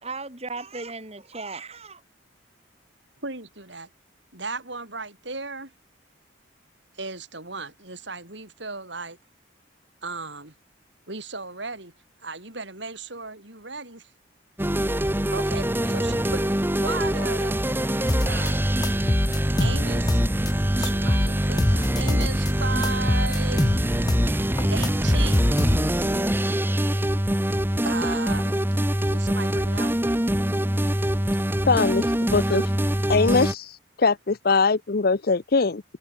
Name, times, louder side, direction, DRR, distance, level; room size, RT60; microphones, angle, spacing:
voice 1, 0.0-2.0, right 3 dB, 30° right, 3.6 m, -36 dB
voice 2, 3.2-3.9 4.3-5.7 6.9-9.2 10.0-10.5 11.1-11.9 12.2-14.1 15.3-16.5 16.8-17.6 18.2-18.6 19.6-20.2 20.8-23.8 24.6-25.5 27.8-28.5 29.1-29.9, right 3 dB, 65° right, 7.8 m, -35 dB
sound 1, 14.6-33.5, right 1 dB, 10° right, 1.4 m, -24 dB
sound 2, 18.1-18.5 18.8-20.5 20.8-22.5 22.8-24.3 24.6-26.1, left 1 dB, 20° left, 0.9 m, -23 dB
voice 3, 31.7-32.7 33.1-35.8, left 4 dB, 50° left, 0.7 m, -22 dB
head